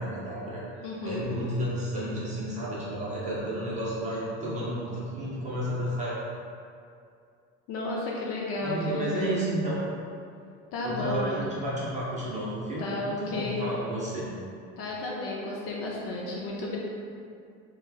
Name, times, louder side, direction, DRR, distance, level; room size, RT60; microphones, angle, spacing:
voice 1, 0.0-6.1 8.6-9.8 10.8-14.3, right 1 dB, 20° right, -8 dB, 0.8 m, -32 dB
voice 2, 0.8-1.4 7.7-9.4 10.7-11.4 12.8-13.7 14.8-16.8, left 2 dB, 45° left, -3 dB, 0.4 m, -32 dB
3.0 x 2.3 x 2.3 m, 2.4 s
supercardioid pair, 120°, 33 cm